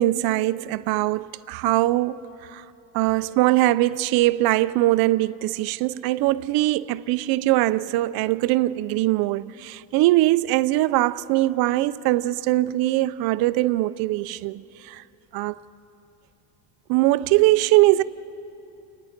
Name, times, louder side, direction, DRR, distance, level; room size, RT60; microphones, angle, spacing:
voice 1, 0.0-2.2 2.5-2.6 2.9-15.0 15.3-15.6 16.9-18.0, right 17 dB, 50° right, 0.4 m, -21 dB
29.5 x 19.5 x 5.1 m
cardioid pair, 175°, 48 cm